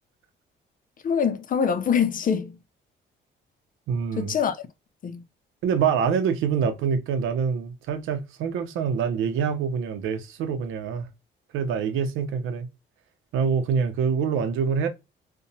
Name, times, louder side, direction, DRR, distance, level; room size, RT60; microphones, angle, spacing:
voice 1, 1.0-2.6 4.2-4.6 5.0-5.2, left 7 dB, 45° left, 0.5 m, -24 dB
voice 2, 3.9-4.3 5.6-11.1 11.5-12.7 13.3-14.9, right 6 dB, 90° right, 0.6 m, -25 dB
2.8 x 2.2 x 2.6 m
cardioid pair, 90°, 20 cm